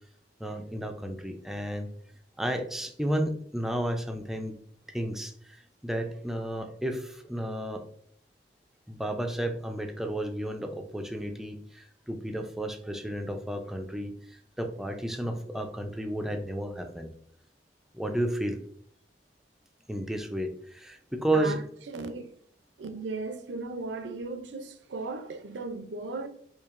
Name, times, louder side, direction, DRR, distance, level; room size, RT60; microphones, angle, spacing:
voice 1, 0.4-1.9 2.4-4.5 4.9-7.8 8.9-17.1 17.9-18.6 19.9-21.6, right 1 dB, ahead, 0.4 m, -32 dB
voice 2, 21.3-22.3 22.8-26.3, right 3 dB, 85° right, 0.5 m, -36 dB
4.5 x 2.7 x 2.5 m
head